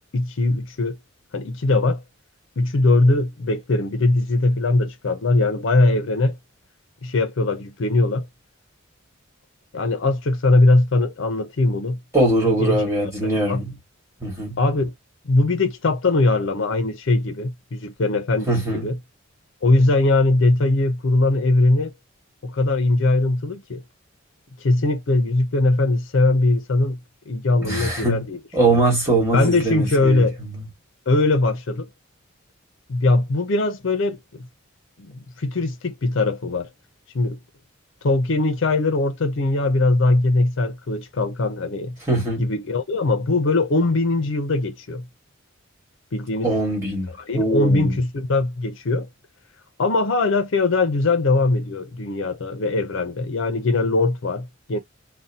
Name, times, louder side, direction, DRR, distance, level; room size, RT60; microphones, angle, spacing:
voice 1, 0.1-1.0 1.3-2.0 2.6-6.4 7.0-8.3 9.7-12.0 12.4-13.6 14.6-14.9 15.2-19.0 19.6-21.9 22.4-23.8 24.6-27.0 27.3-28.4 28.7-28.8 29.3-30.4 31.1-31.9 32.9-34.5 35.0-36.7 37.1-37.4 38.0-42.0 42.4-45.0 46.1-46.5 47.3-49.1 49.8-54.8, left 2 dB, 65° left, 0.5 m, -21 dB
voice 2, 12.1-13.8 14.2-14.6 18.5-18.9 27.6-28.2 28.5-30.2 30.5-30.7 42.1-42.4 46.4-48.0, right 2 dB, 15° right, 1.4 m, -22 dB
2.6 x 2.1 x 2.7 m
head